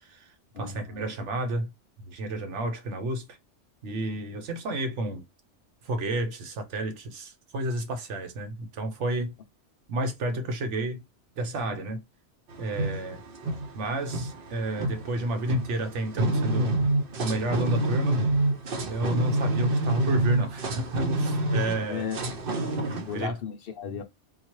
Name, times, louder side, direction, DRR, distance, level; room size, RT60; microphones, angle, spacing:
voice 1, 0.0-1.7 2.1-3.4 3.8-5.2 5.8-9.3 9.9-11.0 11.4-12.0 12.6-13.2 13.7-16.7 17.2-18.3 18.9-22.1 22.8-23.4, right 1 dB, 80° right, 1.1 m, -31 dB
voice 2, 0.5-1.1 21.9-22.2 23.1-24.0, left 7 dB, 60° left, 0.7 m, -35 dB
sound 1, 12.5-23.2, right 1 dB, 55° right, 0.8 m, -27 dB
3.9 x 2.3 x 3.0 m
omnidirectional pair, 1.2 m